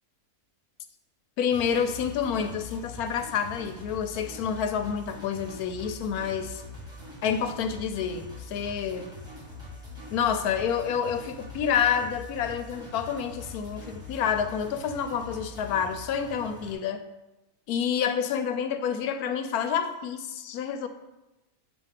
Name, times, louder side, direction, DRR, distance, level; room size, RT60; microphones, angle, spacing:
voice 1, 1.4-6.6 7.2-9.1 10.1-17.1 17.7-20.9, left 7 dB, 75° left, 8 dB, 1.1 m, -28 dB
sound 1, 1.5-16.7, left 2 dB, 5° right, 1.6 m, -43 dB
7.6 x 2.8 x 5.7 m, 1.0 s
omnidirectional pair, 1.6 m